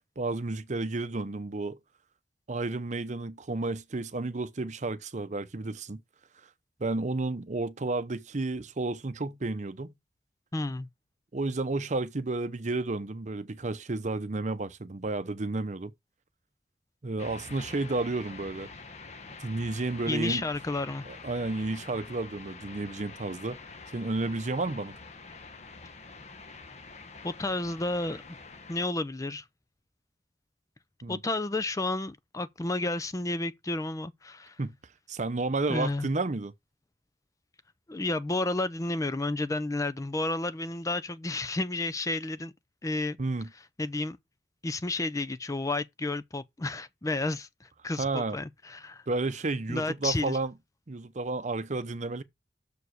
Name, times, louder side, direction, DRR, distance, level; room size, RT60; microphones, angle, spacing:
voice 1, 0.2-1.8 2.5-6.0 6.8-9.9 11.3-15.9 17.0-18.7 19.4-20.4 21.1-23.6 23.9-24.9 31.0-31.2 34.6-34.7 35.1-36.5 43.2-43.5 48.0-48.4 49.1-50.5 50.9-52.2, right 2 dB, 45° right, 0.7 m, -31 dB
voice 2, 10.5-10.9 20.1-21.0 27.2-28.2 28.7-29.4 31.1-34.6 35.7-36.1 37.9-42.5 42.8-43.2 43.8-44.2 44.6-49.0 49.7-50.4, left 2 dB, 20° left, 0.5 m, -31 dB
sound 1, 17.2-28.9, left 4 dB, 40° left, 1.1 m, -46 dB
6.8 x 4.8 x 6.3 m
head